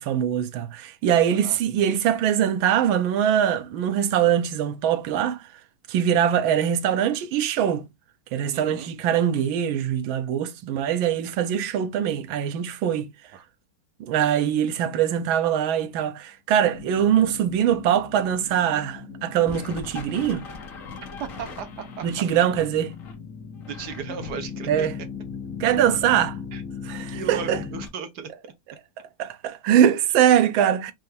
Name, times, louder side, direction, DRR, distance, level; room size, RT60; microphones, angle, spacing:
voice 1, 0.0-5.4 5.9-7.8 8.3-13.1 14.0-20.5 22.0-22.9 24.7-25.0 25.6-26.4 26.8-27.6 29.2-30.9, right 9 dB, 80° right, 1.4 m, -22 dB
voice 2, 8.5-8.9 13.3-13.4 21.2-22.1 23.7-24.9 26.5-26.6 27.1-28.5, right 7 dB, 60° right, 1.3 m, -36 dB
sound 1, 16.7-27.9, left 5 dB, 45° left, 1.2 m, -37 dB
5.5 x 2.6 x 3.2 m
omnidirectional pair, 2.2 m